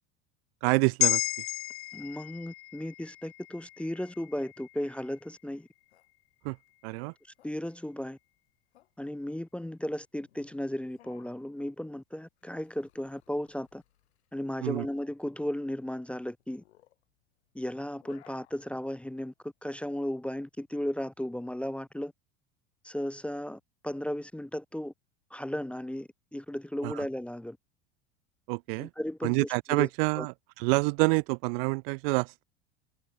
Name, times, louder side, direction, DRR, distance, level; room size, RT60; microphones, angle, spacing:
voice 1, 0.6-1.2 6.4-6.6 6.8-7.1 14.6-14.9 26.8-27.0 28.5-28.9 29.2-32.4, right 30 dB, 65° right, 0.5 m, -27 dB
sound 1, 1.0-5.5 5.9-6.0, left 18 dB, 45° left, 0.6 m, -33 dB
voice 2, 1.9-5.7 7.4-8.2 9.0-13.8 14.3-16.6 17.5-22.1 22.8-24.9 25.3-27.6 28.8-29.9 30.2-30.3, left 1 dB, 5° left, 0.5 m, -35 dB
sound 2, 3.0-22.0, left 13 dB, 85° left, 2.8 m, -64 dB
hypercardioid pair, 95°, 32 cm